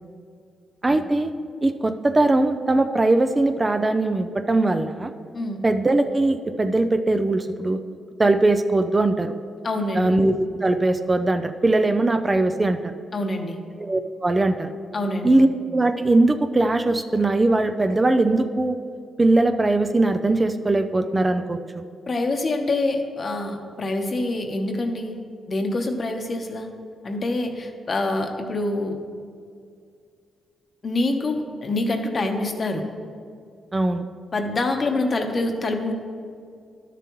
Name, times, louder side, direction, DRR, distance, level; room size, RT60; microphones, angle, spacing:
voice 1, 0.8-1.3 1.6-5.1 5.6-7.8 8.2-9.3 9.9-10.3 10.6-12.9 13.8-14.7 15.2-18.8 19.2-21.8 33.7-34.1, right 2 dB, 25° right, 8 dB, 0.4 m, -20 dB
voice 2, 9.6-10.2 13.1-13.6 14.9-15.5 22.1-25.2 25.5-26.7 27.0-29.0 30.8-32.8 34.3-35.9, left 2 dB, 45° left, 4 dB, 1.0 m, -26 dB
12.0 x 6.9 x 3.1 m, 2.2 s
cardioid pair, 70°, 0 cm